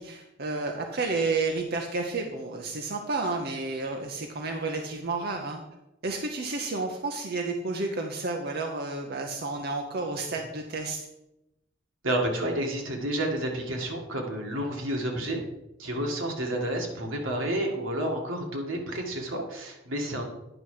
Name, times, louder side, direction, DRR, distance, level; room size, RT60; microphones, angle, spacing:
voice 1, 0.0-5.6 6.0-11.1, right 3 dB, 50° right, 2 dB, 0.8 m, -31 dB
voice 2, 12.0-15.4 15.8-20.3, right 1 dB, 85° right, 1 dB, 1.8 m, -30 dB
9.8 x 5.6 x 4.8 m, 0.90 s
head